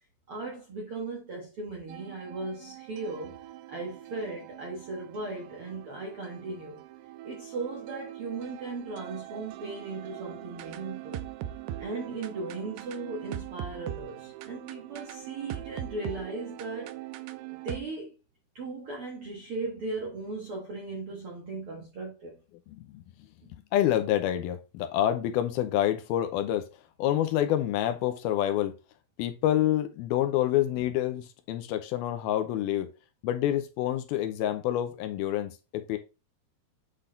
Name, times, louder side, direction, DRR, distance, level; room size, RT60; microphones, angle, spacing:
voice 1, 0.3-3.4 3.7-6.8 7.2-11.3 11.8-17.0 17.6-18.2 18.5-22.4, right 3 dB, 60° right, 1.4 m, -37 dB
sound 1, 1.9-17.8, right 13 dB, 90° right, 2.7 m, -42 dB
voice 2, 23.7-26.7 27.0-28.8 29.2-32.9 33.2-36.0, left 12 dB, 80° left, 2.5 m, -27 dB
8.3 x 3.9 x 3.8 m
omnidirectional pair, 4.6 m